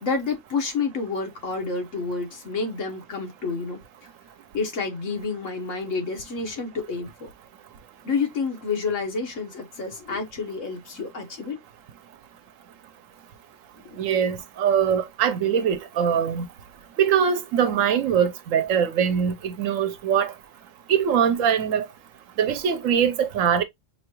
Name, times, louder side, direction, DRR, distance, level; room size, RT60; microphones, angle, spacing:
voice 1, 0.0-3.8 4.5-7.3 8.0-11.6 13.8-14.0, left 4 dB, 75° left, 1.5 m, -29 dB
voice 2, 14.0-16.5 17.0-20.3 20.9-21.9 22.4-23.6, right 8 dB, 85° right, 1.1 m, -22 dB
5.7 x 2.3 x 3.0 m
omnidirectional pair, 1.3 m